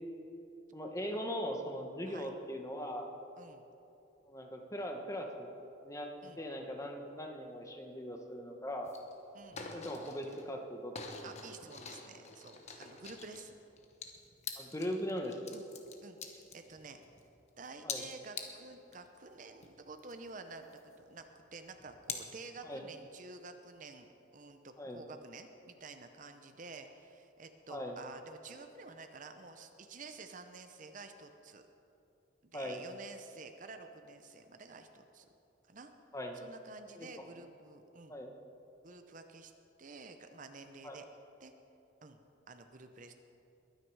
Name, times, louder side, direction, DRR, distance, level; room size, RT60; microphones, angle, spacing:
voice 1, 0.7-3.1 4.3-5.5 5.8-6.1 6.4-8.9 9.7-10.9 11.2-11.3 14.6-15.4 17.8-18.0 22.6-22.8 24.8-25.0 27.7-28.0 32.5-32.8 36.1-36.4 36.9-37.3 38.1-38.3 40.8-41.0, equal, 15° left, 3 dB, 1.1 m, -40 dB
Lego Bricks Clicking and Mixing, 8.9-9.1 9.4-10.6 10.9-17.2 17.6-18.9 19.3-19.4 19.6-21.2 21.7-22.2, left 5 dB, 35° left, 1.2 m, -45 dB
voice 2, 9.3-9.8 11.2-13.6 15.5-15.6 16.0-17.0 17.6-21.2 21.5-31.6 32.4-35.2 35.7-35.9 36.3-38.1 38.8-39.5 39.8-41.1 41.4-41.5 42.0-42.2 42.5-43.1, right 3 dB, 40° right, 7 dB, 0.7 m, -50 dB
22.0 x 9.4 x 4.8 m, 2.8 s
head